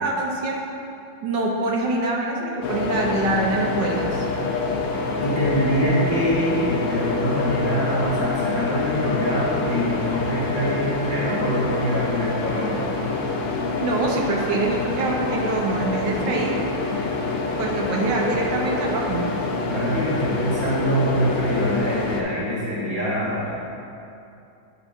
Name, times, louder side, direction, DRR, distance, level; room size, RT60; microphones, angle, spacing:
voice 1, 0.0-0.6 1.2-4.3 13.8-16.6 17.6-19.3, right 2 dB, 70° right, -2 dB, 1.4 m, -24 dB
sound 1, 2.6-22.2, left 3 dB, 80° left, 1.5 m, -26 dB
voice 2, 5.2-12.9 19.6-23.5, equal, 20° left, -8 dB, 0.9 m, -24 dB
9.7 x 5.4 x 2.6 m, 2.7 s
omnidirectional pair, 2.1 m